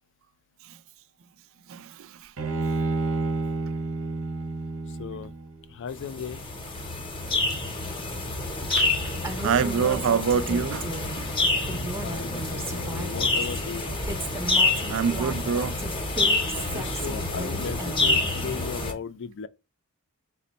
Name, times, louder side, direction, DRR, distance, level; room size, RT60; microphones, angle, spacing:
voice 1, 1.7-2.3 8.6-8.9 9.4-10.9 11.2-11.3 14.9-15.8, right 6 dB, 65° right, 0.4 m, -26 dB
Bowed string instrument, 2.4-5.6, right 3 dB, 85° right, 1.1 m, -29 dB
voice 2, 4.9-5.3 5.7-6.5 11.7-13.9 16.7-19.5, left 7 dB, 55° left, 0.4 m, -37 dB
sound 1, 5.9-18.9, left 2 dB, 25° left, 0.7 m, -28 dB
Female speech woman speaking, 9.2-11.2 11.6-13.6 14.1-18.2, right 2 dB, 10° right, 0.6 m, -36 dB
5.1 x 2.1 x 4.0 m
head